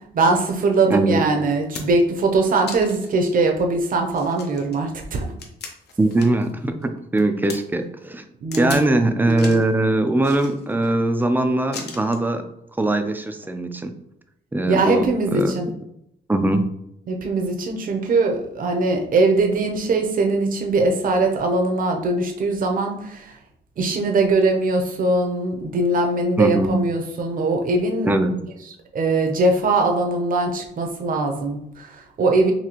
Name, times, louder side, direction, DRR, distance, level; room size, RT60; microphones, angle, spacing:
voice 1, 0.1-5.3 8.4-8.8 14.7-15.7 17.1-23.3 23.8-28.1 28.9-32.5, right 3 dB, 50° right, 3 dB, 0.7 m, -21 dB
Wood panel small snap drop, 0.9-1.0 1.4-2.1 2.7-3.1 3.6-3.7 4.1-6.5 6.8-7.6 8.5-8.9 9.3-9.7 10.2-10.9 11.7-12.3 13.3-13.5, left 5 dB, 65° left, 0.7 m, -37 dB
voice 2, 0.9-1.2 6.0-8.2 8.6-12.4 12.8-13.9 14.5-15.5 16.3-16.7 26.4-26.8 28.1-28.3, right 2 dB, 10° right, 7 dB, 0.3 m, -21 dB
4.1 x 2.6 x 2.9 m, 0.79 s
cardioid pair, 120°, 19 cm